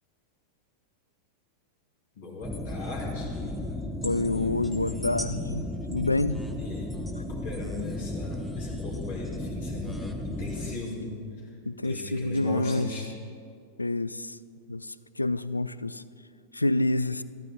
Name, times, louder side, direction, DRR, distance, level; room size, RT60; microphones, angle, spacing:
voice 1, 2.1-3.9 6.6-6.9 7.1-11.1 11.4-11.5 11.8-13.1, left 2 dB, 55° left, 2.9 m, -38 dB
sound 1, 2.4-10.7, left 1 dB, ahead, 0.9 m, -34 dB
voice 2, 4.0-6.4 11.7-12.9 13.8-14.4 14.7-16.0 16.5-17.2, left 2 dB, 85° left, 0.3 m, -28 dB
13.5 x 12.0 x 4.5 m
figure-of-eight pair, 90°, 0 cm